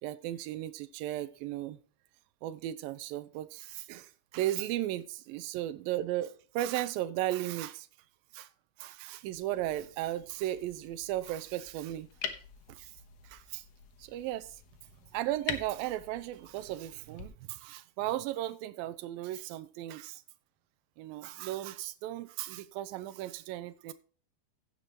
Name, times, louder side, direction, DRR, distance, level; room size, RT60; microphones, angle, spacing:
voice 1, 0.0-1.8 2.4-7.9 8.3-8.5 8.8-12.1 12.7-12.9 13.2-13.6 14.0-14.5 15.1-20.2 21.0-23.9, right 14 dB, 75° right, 2.3 m, -36 dB
sound 1, 9.2-17.3, left 8 dB, 75° left, 1.5 m, -45 dB
16.0 x 6.9 x 3.0 m
omnidirectional pair, 4.5 m